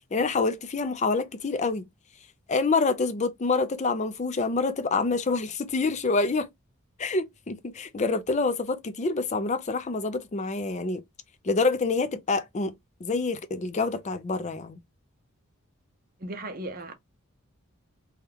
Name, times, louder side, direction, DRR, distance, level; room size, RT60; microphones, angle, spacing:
voice 1, 0.1-1.8 2.5-6.5 7.0-11.0 11.4-12.7 13.0-14.8, left 3 dB, 30° left, 0.4 m, -27 dB
voice 2, 16.2-16.9, right 1 dB, 40° right, 0.7 m, -36 dB
3.5 x 2.3 x 2.9 m
head